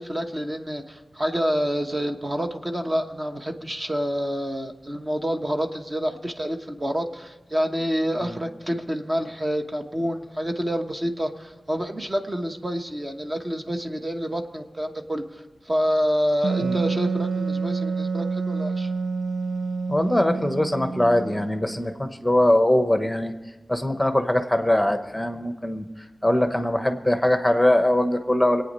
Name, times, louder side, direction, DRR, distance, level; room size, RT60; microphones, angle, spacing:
voice 1, 0.0-18.9, equal, 30° right, 4 dB, 1.1 m, -28 dB
Wind instrument woodwind instrument, 16.4-21.8, right 4 dB, 85° right, 0.4 m, -28 dB
voice 2, 19.9-23.3 23.7-25.8 26.2-28.6, left 1 dB, 5° left, 7 dB, 1.0 m, -22 dB
24.5 x 9.0 x 5.3 m, 1.2 s
wide cardioid pair, 90°, 0 cm